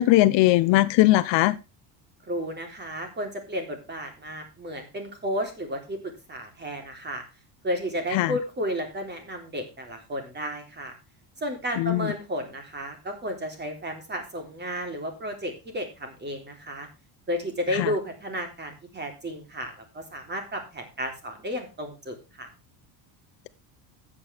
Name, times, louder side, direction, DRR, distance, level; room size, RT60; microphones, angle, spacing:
voice 1, 0.0-1.6 8.1-8.3 11.8-12.1 17.8-17.9, left 17 dB, 65° left, 0.9 m, -20 dB
voice 2, 2.2-7.2 7.6-10.9 11.4-16.9 17.3-22.5, equal, 20° right, 3.6 m, -33 dB
13.0 x 8.8 x 3.5 m
cardioid pair, 135°, 47 cm